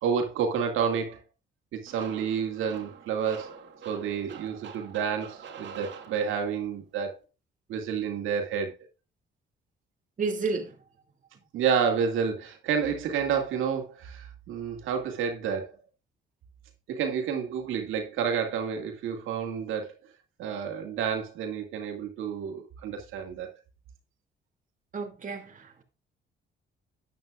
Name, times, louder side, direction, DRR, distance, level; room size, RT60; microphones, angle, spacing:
voice 1, 0.0-1.2 1.7-3.5 3.8-7.1 7.7-8.7 11.5-15.8 16.9-19.9 20.4-23.5, right 7 dB, 85° right, 2.4 m, -29 dB
sound 1, 1.9-6.7, right 6 dB, 65° right, 2.7 m, -45 dB
voice 2, 10.2-10.8 24.9-25.8, right 4 dB, 40° right, 2.4 m, -31 dB
12.0 x 9.3 x 2.4 m
cardioid pair, 90°, 20 cm